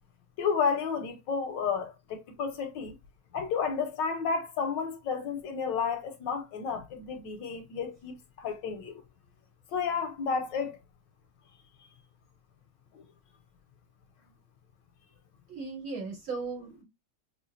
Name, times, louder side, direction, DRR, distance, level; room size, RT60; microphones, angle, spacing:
voice 1, 0.4-2.9 3.3-9.0 9.7-10.8, left 6 dB, 70° left, 1.2 m, -31 dB
voice 2, 15.5-16.8, right 4 dB, 75° right, 3.6 m, -37 dB
5.6 x 2.3 x 2.4 m
omnidirectional pair, 2.2 m